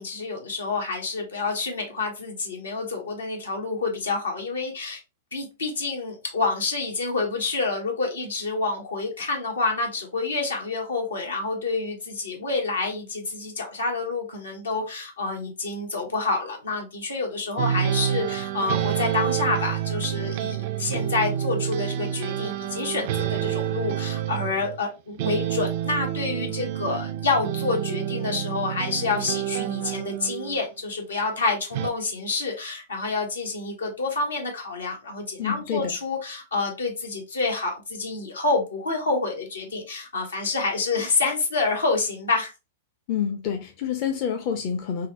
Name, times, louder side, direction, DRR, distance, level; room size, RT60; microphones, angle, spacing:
voice 1, 0.0-5.0 5.3-42.5, left 3 dB, 85° left, 1.1 m, -28 dB
sound 1, 17.6-24.8 25.2-30.6 31.7-31.9, right 11 dB, 55° right, 0.4 m, -28 dB
voice 2, 35.4-35.9 43.1-45.1, left 8 dB, 45° left, 0.6 m, -28 dB
3.6 x 2.0 x 2.9 m
hypercardioid pair, 110°, 0 cm